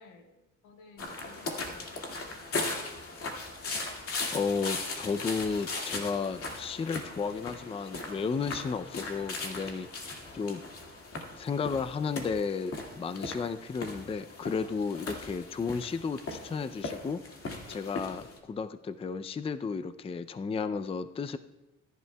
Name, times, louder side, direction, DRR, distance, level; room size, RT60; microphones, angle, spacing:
voice 1, 0.0-2.4, left 3 dB, 90° left, 3 dB, 1.7 m, -55 dB
sound 1, 1.0-18.4, left 3 dB, 50° left, 2.1 m, -38 dB
voice 2, 4.3-9.9 10.3-10.6 11.4-17.2 17.7-21.4, left 5 dB, 20° left, 11 dB, 0.4 m, -33 dB
20.0 x 11.0 x 2.3 m, 1.0 s
cardioid pair, 90°, 30 cm